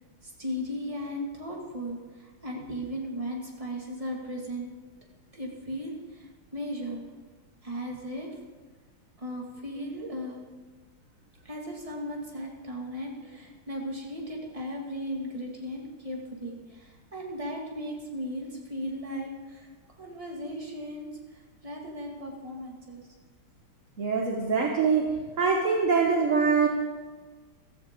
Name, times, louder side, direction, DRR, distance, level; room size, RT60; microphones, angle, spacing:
voice 1, 0.2-4.7 5.3-6.2 6.5-7.0 7.6-8.3 9.2-10.4 11.4-19.7 20.0-21.1 21.6-23.0, equal, 15° right, -2 dB, 2.2 m, -36 dB
voice 2, 24.0-26.7, right 5 dB, 45° right, 2 dB, 1.3 m, -24 dB
15.5 x 14.0 x 3.8 m, 1.3 s
omnidirectional pair, 2.3 m